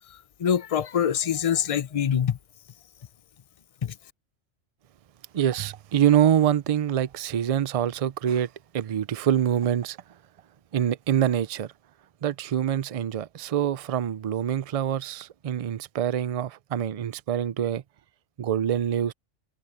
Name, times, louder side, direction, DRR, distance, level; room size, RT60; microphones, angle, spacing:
voice 1, 0.4-2.4 3.8-3.9, left 8 dB, 35° left, 0.6 m, -24 dB
voice 2, 5.3-10.0 10.7-11.7 12.2-17.8 18.4-19.1, right 10 dB, 55° right, 0.4 m, -25 dB
omnidirectional pair, 1.3 m